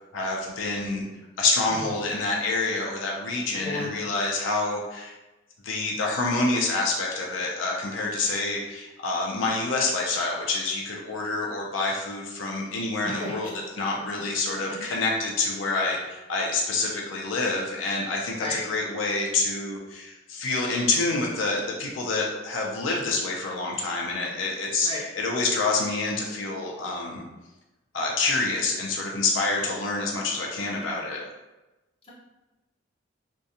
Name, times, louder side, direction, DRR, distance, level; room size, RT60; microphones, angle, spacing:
voice 1, 0.1-1.0 1.4-5.1 5.6-24.9 25.2-27.2 27.9-31.2, left 3 dB, 85° left, -1 dB, 0.5 m, -27 dB
voice 2, 3.6-3.9 13.0-13.4 14.0-14.1 14.7-14.8 18.4-18.6 24.8-25.1, left 2 dB, 30° left, -6 dB, 0.7 m, -33 dB
2.5 x 2.2 x 2.7 m, 1.1 s
head